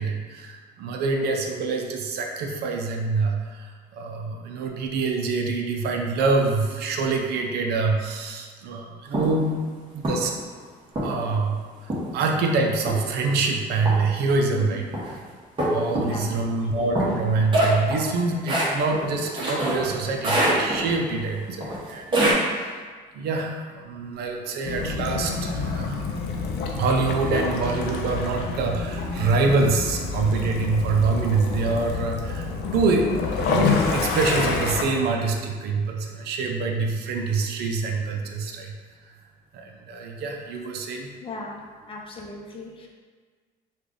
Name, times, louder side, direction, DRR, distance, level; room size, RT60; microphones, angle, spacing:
voice 1, 0.0-9.6 9.9-10.3 11.0-14.9 15.6-22.8 23.1-25.9 26.8-38.7 39.5-41.1, right 3 dB, 70° right, 2 dB, 0.5 m, -25 dB
sound 1, 9.1-9.4 10.0-10.4 11.0-11.3 11.9-12.2 12.9-13.3 13.9-14.2 14.9-15.1 15.6-16.3 17.0-19.9 20.2-21.0 21.6-22.3, right 1 dB, 30° right, 1.1 m, -24 dB
voice 2, 14.5-15.0 16.0-16.3 24.4-24.6 25.2-25.3 30.3-30.4 41.2-42.9, left 3 dB, 30° left, -1 dB, 0.6 m, -38 dB
Waves surf / Splash splatter / Trickle dribble, 24.6-34.8, left 4 dB, 80° left, 0.5 m, -28 dB
3.2 x 2.3 x 3.8 m, 1.5 s
cardioid pair, 110°, 17 cm